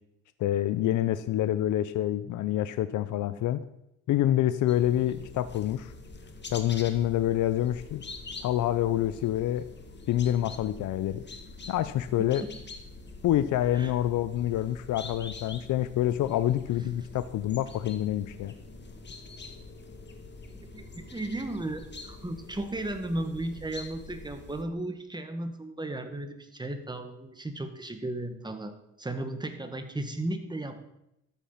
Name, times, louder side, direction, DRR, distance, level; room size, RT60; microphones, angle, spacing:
voice 1, 0.4-3.6 4.1-5.9 6.5-8.0 8.4-9.6 10.1-11.2 11.7-12.4 13.2-18.5, left 12 dB, 80° left, 13 dB, 0.7 m, -27 dB
sound 1, 4.7-24.6, left 3 dB, 35° left, 2.0 m, -45 dB
voice 2, 20.7-30.8, right 1 dB, 15° right, 7 dB, 1.9 m, -35 dB
13.0 x 9.1 x 5.7 m, 0.82 s
cardioid pair, 90°, 30 cm